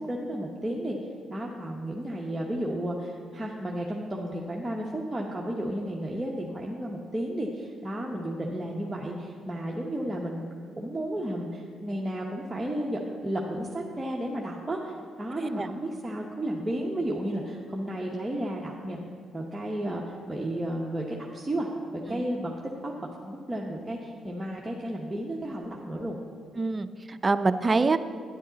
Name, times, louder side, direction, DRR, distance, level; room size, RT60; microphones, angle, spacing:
voice 1, 0.1-1.0 1.3-19.0 19.3-21.7 22.1-22.5 22.8-22.9 23.2-26.2, right 1 dB, 15° right, -3 dB, 0.9 m, -33 dB
voice 2, 26.6-28.0, right 3 dB, 30° right, 10 dB, 0.5 m, -25 dB
9.9 x 9.8 x 4.0 m, 2.1 s
cardioid pair, 90°, 0 cm